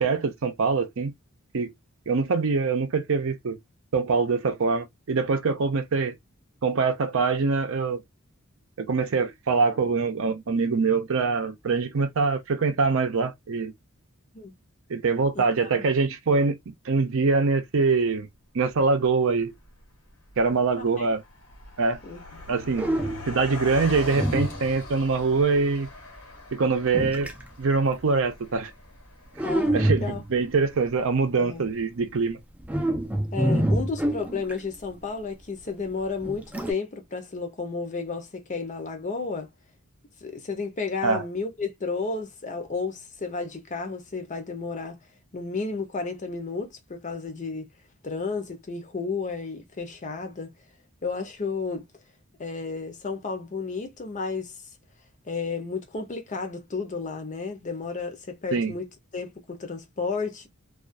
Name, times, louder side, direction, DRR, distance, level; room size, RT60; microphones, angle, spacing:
voice 1, 0.0-1.1 1.5-1.7 2.1-3.6 3.9-6.2 6.6-8.0 8.8-13.7 14.9-16.6 16.9-18.3 18.5-19.5 20.4-21.2 21.8-22.0 22.5-22.9 23.3-25.9 26.5-27.3 27.6-28.7 29.7-32.4 41.0-41.2 58.5-58.7, right 4 dB, 65° right, 0.6 m, -24 dB
voice 2, 15.3-15.7 20.8-21.1 22.0-22.2 29.4-30.2 31.4-31.7 33.3-39.5 40.2-45.0 45.3-47.7 48.0-50.5 51.0-51.9 52.4-54.5 55.3-60.5, left 4 dB, 35° left, 0.7 m, -32 dB
Car passing by, 19.6-19.8 20.1-30.5, left 2 dB, 85° left, 1.1 m, -42 dB
sound 1, 22.4-22.5 22.8-23.4 24.1-25.0 26.9-27.5 29.4-30.5 32.6-34.8 36.2-36.7, right 1 dB, 5° right, 0.4 m, -26 dB
2.4 x 2.3 x 2.4 m
head